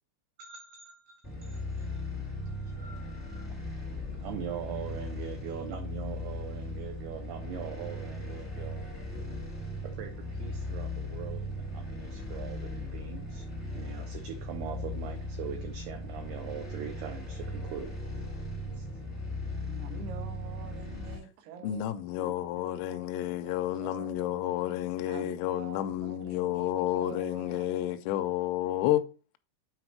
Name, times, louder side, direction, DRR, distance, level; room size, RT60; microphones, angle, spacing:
voice 1, 0.4-2.0 2.4-3.6 4.1-8.8 9.8-13.5 13.7-17.9 18.7-18.9, right 8 dB, 85° right, 2.3 m, -42 dB
sound 1, 1.2-21.2, left 1 dB, 10° left, 0.7 m, -38 dB
voice 2, 19.7-21.9 22.2-24.6 25.1-28.0, right 6 dB, 70° right, 2.8 m, -47 dB
voice 3, 21.6-29.0, left 13 dB, 80° left, 2.6 m, -30 dB
9.0 x 4.2 x 4.5 m
omnidirectional pair, 5.7 m